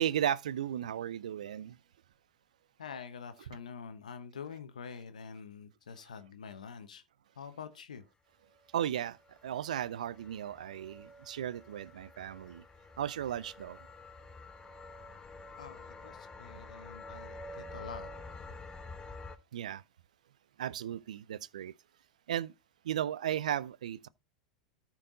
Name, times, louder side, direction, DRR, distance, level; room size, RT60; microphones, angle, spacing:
voice 1, 0.0-1.8 8.7-12.6 13.0-13.8 19.5-19.8 20.6-21.7 22.3-22.5 22.8-24.1, right 10 dB, 75° right, 0.4 m, -35 dB
voice 2, 2.8-7.0 7.4-8.1 15.6-18.1, left 6 dB, 80° left, 1.0 m, -46 dB
sound 1, 8.8-19.4, left 2 dB, 20° left, 0.9 m, -49 dB
13.5 x 4.5 x 3.9 m
hypercardioid pair, 90°, 4 cm